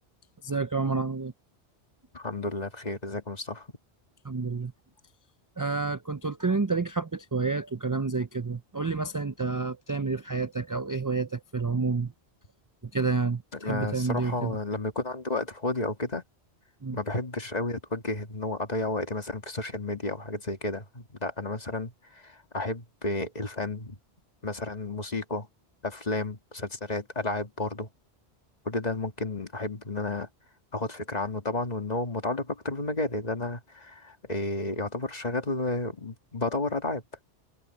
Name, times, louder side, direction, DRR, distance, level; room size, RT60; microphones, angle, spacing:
voice 1, 0.4-1.3 4.2-4.7 5.6-12.1 12.9-14.6 16.8-17.0, right 4 dB, 30° right, 0.4 m, -29 dB
voice 2, 2.1-3.7 13.5-16.2 16.9-24.0 24.4-25.5 25.8-27.9 28.7-30.3 30.7-37.0, left 2 dB, 40° left, 1.9 m, -32 dB
omnidirectional pair, 1.1 m